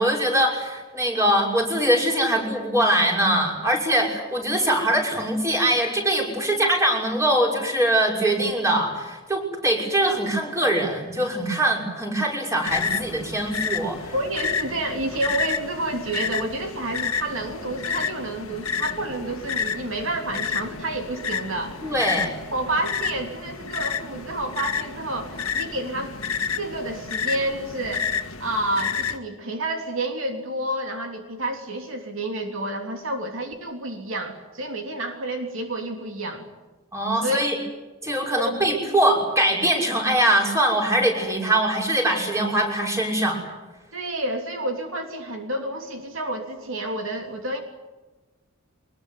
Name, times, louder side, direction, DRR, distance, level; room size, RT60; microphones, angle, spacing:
voice 1, 0.0-14.1 21.8-22.3 36.9-37.6 38.0-43.4, right 1 dB, 15° right, 1 dB, 6.0 m, -22 dB
sound 1, 12.6-29.2, left 6 dB, 85° left, 1.9 m, -30 dB
voice 2, 14.1-21.9 22.5-26.2 26.6-28.1 28.4-36.5 37.2-37.4 38.4-38.5 43.9-47.6, right 1 dB, 70° right, 4 dB, 3.3 m, -29 dB
24.0 x 21.5 x 9.5 m, 1.2 s
head